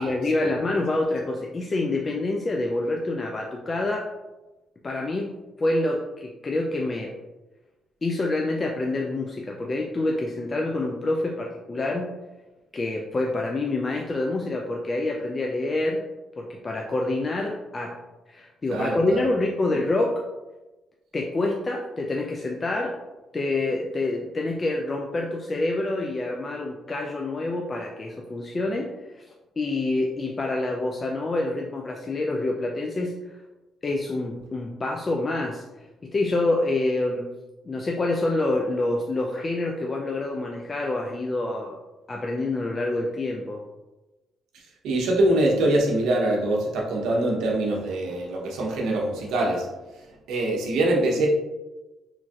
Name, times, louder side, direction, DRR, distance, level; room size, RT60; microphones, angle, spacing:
voice 1, 0.0-4.1 4.8-5.3 5.6-7.1 8.0-12.1 12.7-16.0 16.4-18.0 18.3-20.2 21.1-23.0 23.3-29.2 29.6-33.1 33.8-35.6 36.1-37.3 37.6-41.7 42.1-43.6, left 2 dB, 30° left, 0 dB, 0.3 m, -27 dB
voice 2, 18.7-19.2 44.8-49.7 50.3-51.3, right 1 dB, 85° right, -1 dB, 0.6 m, -23 dB
3.1 x 2.5 x 2.3 m, 1.1 s
cardioid pair, 90°, 0 cm